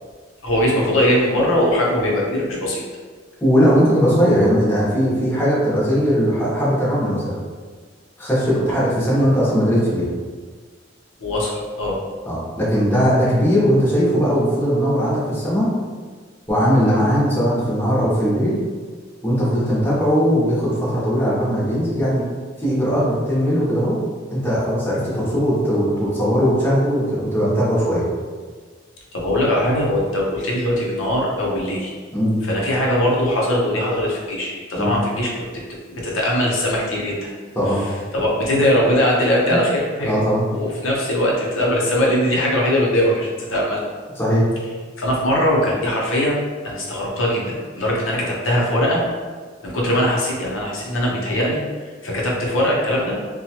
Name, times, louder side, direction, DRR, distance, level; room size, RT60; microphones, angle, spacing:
voice 1, 0.4-2.8 11.2-12.0 29.1-31.9 32.4-35.3 35.9-37.3 38.1-43.9 45.0-49.0 49.6-51.6 52.0-53.2, left 1 dB, 90° left, -4 dB, 0.6 m, -20 dB
voice 2, 3.4-7.3 8.2-10.1 12.3-15.7 16.5-18.6 19.2-22.3 22.6-24.0 24.3-28.0 32.1-32.4 34.8-34.9 37.5-37.8 39.5-39.6 40.0-40.5 44.1-44.4, equal, 10° left, -9 dB, 0.8 m, -19 dB
2.8 x 2.2 x 2.8 m, 1.5 s
head